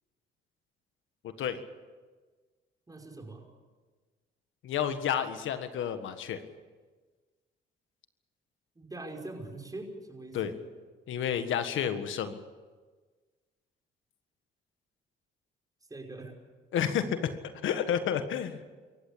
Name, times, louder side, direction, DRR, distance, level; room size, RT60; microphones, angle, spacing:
voice 1, 2.9-3.4 8.8-10.6 15.9-16.3, right 2 dB, 20° right, 2 dB, 5.6 m, -42 dB
voice 2, 4.6-6.4 10.3-10.5 11.1-12.3 16.7-17.3 17.6-18.6, left 9 dB, 80° left, 9 dB, 1.6 m, -30 dB
27.0 x 15.0 x 8.7 m, 1.4 s
cardioid pair, 90°, 20 cm